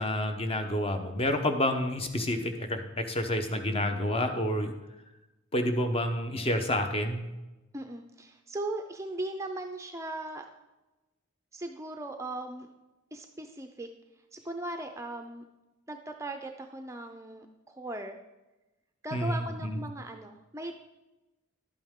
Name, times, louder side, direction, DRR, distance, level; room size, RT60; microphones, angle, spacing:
voice 1, 0.0-4.7 5.5-7.2 19.1-19.8, left 1 dB, 30° left, 6 dB, 0.9 m, -29 dB
voice 2, 7.7-10.5 11.5-12.7 13.1-13.9 14.3-15.4 15.9-18.2 19.0-20.7, right 1 dB, 15° right, 5 dB, 0.5 m, -38 dB
11.5 x 8.7 x 3.7 m, 1.0 s
head